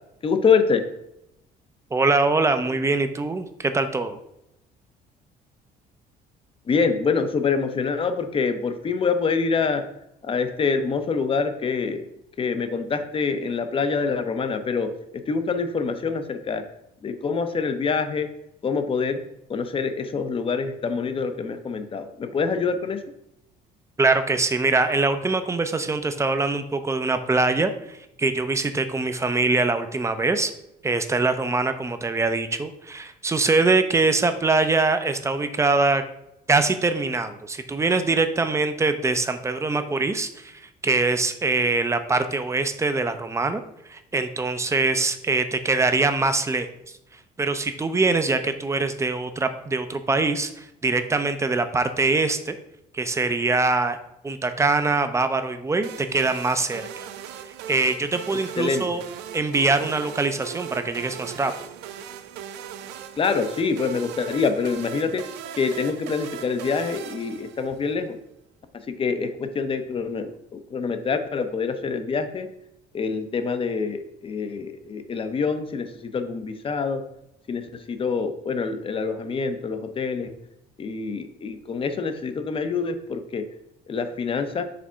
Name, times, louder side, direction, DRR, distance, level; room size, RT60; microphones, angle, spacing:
voice 1, 0.2-0.9 6.7-9.9 10.2-12.0 12.4-16.6 17.0-18.3 18.6-19.2 19.5-23.0 58.6-58.9 63.2-65.3 65.6-68.2 68.7-72.5 72.9-77.0 77.5-80.3 80.8-83.5 83.9-84.6, left 5 dB, 30° left, 9 dB, 0.6 m, -25 dB
voice 2, 1.9-4.2 24.0-30.5 30.8-36.0 36.5-43.6 43.9-46.7 47.4-52.6 52.9-54.0 54.2-56.9 57.5-59.0 59.3-61.5, right 3 dB, 15° right, 9 dB, 0.5 m, -23 dB
sound 1, 55.8-68.0, right 9 dB, 90° right, 0.5 m, -39 dB
5.0 x 3.4 x 5.5 m, 0.83 s
cardioid pair, 110°, 17 cm